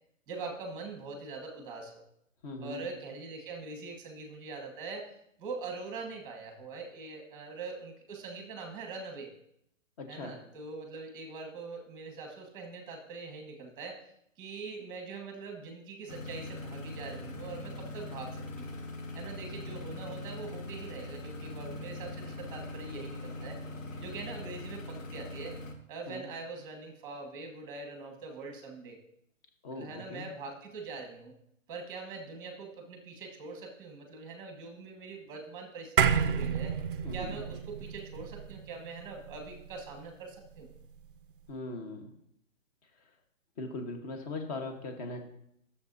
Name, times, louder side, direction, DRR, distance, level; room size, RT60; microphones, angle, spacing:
voice 1, 0.3-2.0 2.6-5.1 5.4-9.3 10.1-14.0 14.4-18.8 19.1-23.6 24.0-25.5 25.9-29.0 29.7-31.3 31.7-36.7 37.1-40.7, right 4 dB, 10° right, 3 dB, 1.3 m, -43 dB
voice 2, 2.4-2.9 10.0-10.4 26.1-26.3 29.6-30.3 37.0-37.4 41.5-42.1 43.6-45.2, left 2 dB, 30° left, 4 dB, 1.3 m, -39 dB
sound 1, 16.1-25.7, left 1 dB, 80° left, 1.7 m, -41 dB
sound 2, 36.0-40.6, right 7 dB, 45° right, 0.4 m, -31 dB
12.5 x 7.0 x 2.7 m, 0.75 s
hypercardioid pair, 155°, 39 cm